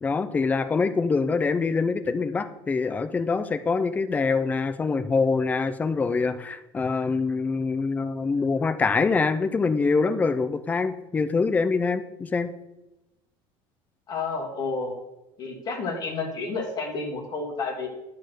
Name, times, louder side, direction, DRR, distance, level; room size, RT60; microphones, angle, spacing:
voice 1, 0.0-12.5, left 4 dB, 15° left, 11 dB, 0.5 m, -25 dB
voice 2, 14.1-14.9 15.4-17.9, left 3 dB, 35° left, 0 dB, 1.6 m, -30 dB
10.5 x 4.4 x 6.3 m, 0.97 s
cardioid pair, 170°, 12 cm